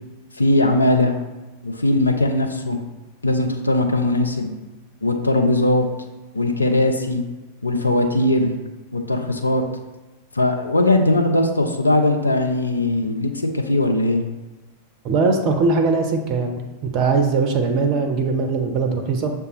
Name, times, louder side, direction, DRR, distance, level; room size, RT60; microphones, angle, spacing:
voice 1, 0.3-1.1 1.6-2.8 3.2-4.5 5.0-5.9 6.3-7.2 7.6-8.5 8.9-9.6 10.3-14.2, left 1 dB, 80° left, 4 dB, 0.4 m, -19 dB
voice 2, 15.0-16.6 16.9-19.3, right 4 dB, 35° right, 4 dB, 0.5 m, -20 dB
6.5 x 2.3 x 3.0 m, 1.1 s
figure-of-eight pair, 90°, 0 cm